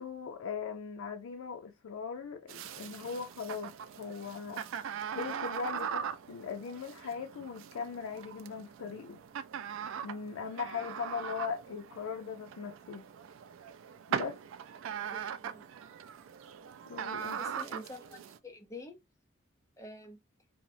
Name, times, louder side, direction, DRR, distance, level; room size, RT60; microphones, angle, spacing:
voice 1, 0.0-4.6 5.1-9.2 10.0-13.0 14.1-14.4 16.9-17.5, left 6 dB, 85° left, 0.4 m, -39 dB
sound 1, 2.5-18.4, right 8 dB, 70° right, 0.3 m, -41 dB
voice 2, 15.0-15.7 17.2-19.0 19.8-20.2, left 1 dB, 15° left, 0.5 m, -48 dB
2.8 x 2.0 x 2.5 m
head